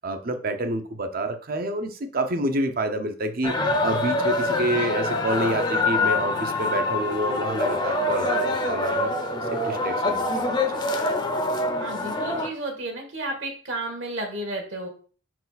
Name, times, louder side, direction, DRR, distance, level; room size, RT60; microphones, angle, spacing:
voice 1, 0.0-9.1 9.5-10.8, right 1 dB, 45° right, 7 dB, 0.8 m, -28 dB
sound 1, 3.4-12.5, left 2 dB, 25° left, 0.7 m, -25 dB
voice 2, 11.8-14.9, right 2 dB, 70° right, 2 dB, 1.8 m, -32 dB
5.3 x 4.6 x 4.1 m, 0.41 s
head